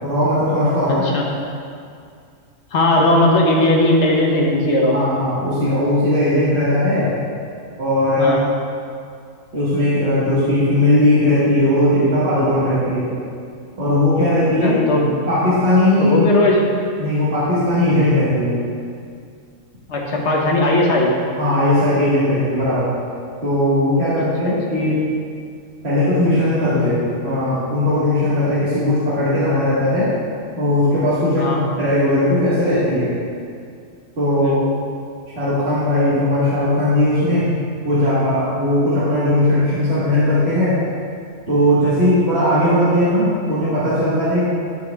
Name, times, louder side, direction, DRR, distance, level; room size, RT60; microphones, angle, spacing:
voice 1, 0.0-1.0 4.9-7.1 7.8-8.3 9.5-13.1 13.8-14.8 15.3-16.1 17.0-18.6 21.4-22.9 23.4-25.0 25.8-30.1 30.6-33.1 34.2-34.6 35.4-37.5 37.8-40.8 41.5-44.4, left 1 dB, 55° right, -12 dB, 1.7 m, -18 dB
voice 2, 2.7-5.0 8.2-8.4 14.6-15.1 16.0-16.6 19.9-21.1 24.2-24.5 31.4-31.6 34.4-34.7, left 1 dB, 65° left, -1 dB, 1.2 m, -17 dB
12.0 x 4.7 x 2.3 m, 2.3 s
omnidirectional pair, 1.3 m